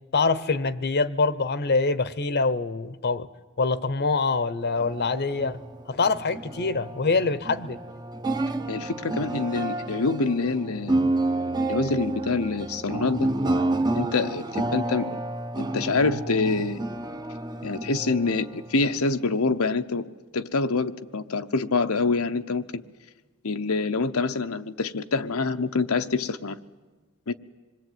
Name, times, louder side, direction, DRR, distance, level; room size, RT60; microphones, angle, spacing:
voice 1, 0.1-3.3 3.6-5.6 5.9-7.8, left 4 dB, 50° left, 16 dB, 0.9 m, -25 dB
sound 1, 4.6-19.3, right 2 dB, 20° right, 0.8 m, -30 dB
voice 2, 8.7-11.0 11.7-13.3 13.9-15.2 15.6-16.8 17.6-22.8 23.4-26.6 27.3-27.4, left 3 dB, 85° left, 9 dB, 1.0 m, -26 dB
26.5 x 21.5 x 9.3 m, 1.3 s
head